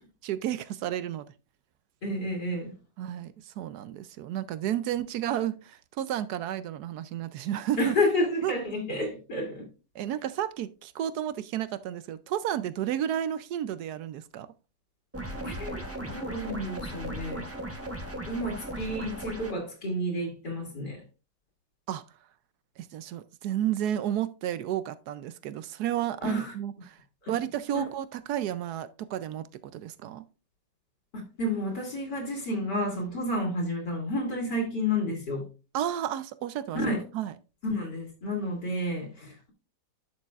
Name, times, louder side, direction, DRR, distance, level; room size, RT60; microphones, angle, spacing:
voice 1, 0.2-1.3 3.0-7.9 8.4-8.5 9.9-14.5 21.9-22.0 22.8-27.0 27.3-30.2 35.7-36.8 37.1-37.3, right 11 dB, 70° right, 1.0 m, -32 dB
voice 2, 2.0-2.7 7.8-9.7 15.4-17.5 18.3-21.0 26.2-26.5 27.2-27.3 27.7-27.9 31.1-35.5 36.7-37.0 37.6-39.5, left 1 dB, 60° left, 2.8 m, -30 dB
sound 1, 15.1-19.5, right 1 dB, 10° right, 0.8 m, -37 dB
11.0 x 6.7 x 2.4 m
omnidirectional pair, 2.1 m